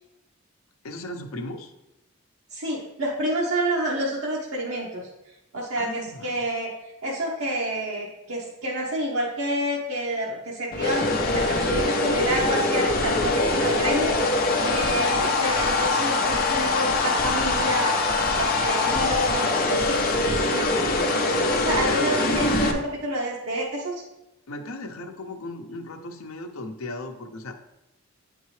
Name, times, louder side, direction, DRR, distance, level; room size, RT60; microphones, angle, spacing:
voice 1, 0.8-1.7 5.8-6.4 21.7-22.1 24.5-27.5, left 2 dB, 80° left, 5 dB, 0.7 m, -36 dB
voice 2, 2.5-5.1 5.5-6.7 7.0-11.1 11.3-18.0 18.4-20.7 21.5-23.9, right 1 dB, 85° right, -4 dB, 1.0 m, -28 dB
sound 1, 10.7-22.7, left 2 dB, 45° left, 0.6 m, -23 dB
8.1 x 3.7 x 3.2 m, 0.96 s
head